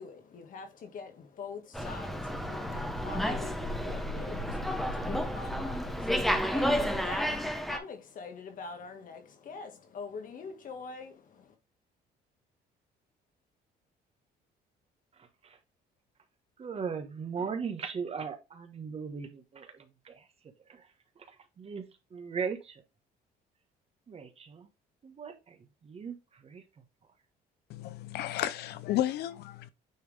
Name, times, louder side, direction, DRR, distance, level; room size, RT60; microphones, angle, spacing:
voice 1, 0.0-11.6, left 5 dB, 50° left, 1.7 m, -44 dB
Slam, 1.7-7.8, equal, ahead, 1.1 m, -31 dB
voice 2, 16.6-20.2 20.7-20.9 21.2-21.3 21.6-21.8 22.1-22.8 24.1-24.7 25.0-26.6, right 6 dB, 35° right, 1.4 m, -38 dB
voice 3, 27.7-29.7, left 13 dB, 75° left, 0.6 m, -32 dB
9.4 x 3.4 x 3.5 m
cardioid pair, 110°, 17 cm